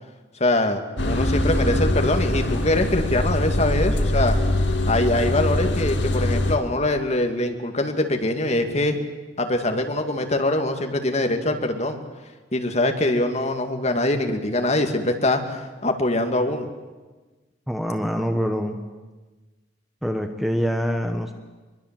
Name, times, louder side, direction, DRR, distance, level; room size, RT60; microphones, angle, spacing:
voice 1, 0.4-4.4 4.9-9.0 9.4-12.0 12.5-16.7, left 1 dB, 35° left, 5 dB, 2.2 m, -23 dB
sound 1, 1.0-6.6, left 1 dB, 75° left, 2.1 m, -23 dB
voice 2, 17.7-18.8 20.0-21.3, equal, ahead, 5 dB, 1.2 m, -25 dB
24.0 x 22.5 x 7.6 m, 1.3 s
head